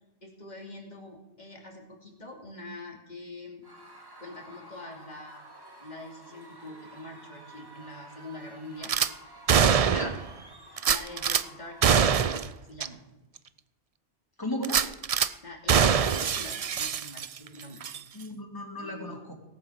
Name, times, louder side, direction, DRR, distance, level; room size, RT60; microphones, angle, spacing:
voice 1, 0.2-3.6 4.2-5.4 5.8-9.0 9.6-10.3 10.9-13.0 15.4-17.8 18.8-19.2, left 2 dB, 40° left, 1 dB, 2.9 m, -44 dB
Screaming / Cheering / Crowd, 3.6-12.2, right 1 dB, 20° right, 2.2 m, -51 dB
Gunshot gunfire / Glass, 8.8-9.1 9.5-10.2 10.8-11.4 11.8-12.5 12.8-12.9 13.4-13.5 14.6-15.3 15.7-17.5 17.8-18.0, right 7 dB, 50° right, 0.4 m, -24 dB
voice 2, 9.9-10.2 14.4-14.8 18.1-19.3, left 1 dB, 20° left, 2 dB, 2.5 m, -35 dB
17.5 x 8.5 x 7.4 m, 1.0 s
omnidirectional pair, 1.2 m